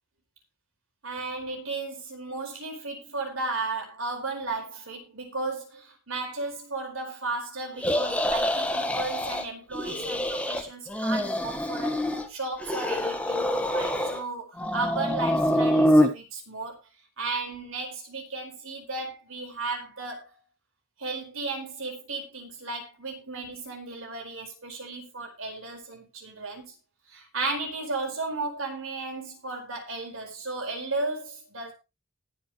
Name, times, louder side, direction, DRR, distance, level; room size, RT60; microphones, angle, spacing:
voice 1, 1.0-16.8 17.2-20.4 21.0-26.7 27.1-31.7, right 3 dB, 90° right, 4.8 m, -34 dB
sound 1, 7.8-9.5 9.7-10.6 10.9-12.3 12.6-14.2 14.6-16.1, equal, 5° left, 1.4 m, -25 dB
19.5 x 8.0 x 3.1 m
head